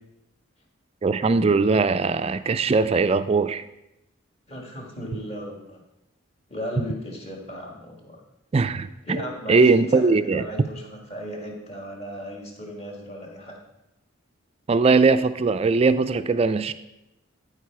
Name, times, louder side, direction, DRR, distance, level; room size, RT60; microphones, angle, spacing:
voice 1, 1.0-3.6 8.5-9.2 9.5-10.5 14.7-16.7, right 4 dB, 30° right, 11 dB, 0.3 m, -20 dB
voice 2, 4.5-5.8 6.5-8.2 9.0-13.6, equal, 30° left, 0 dB, 1.7 m, -36 dB
13.0 x 4.8 x 4.7 m, 0.91 s
head